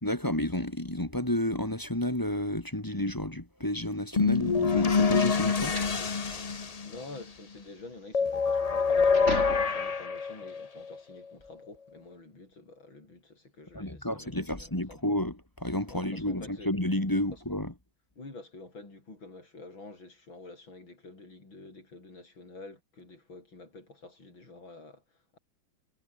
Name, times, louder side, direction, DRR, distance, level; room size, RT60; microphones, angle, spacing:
voice 1, 0.0-5.8 13.7-17.7, left 1 dB, 10° left, 1.8 m, -31 dB
sound 1, 4.1-10.0, right 1 dB, 30° right, 7.6 m, -40 dB
sound 2, 4.2-7.2 8.1-11.0, left 5 dB, 85° left, 0.3 m, -26 dB
voice 2, 6.5-15.1 15.9-16.8 17.3-17.4 18.2-25.4, left 2 dB, 65° left, 7.6 m, -48 dB
omnidirectional pair, 2.3 m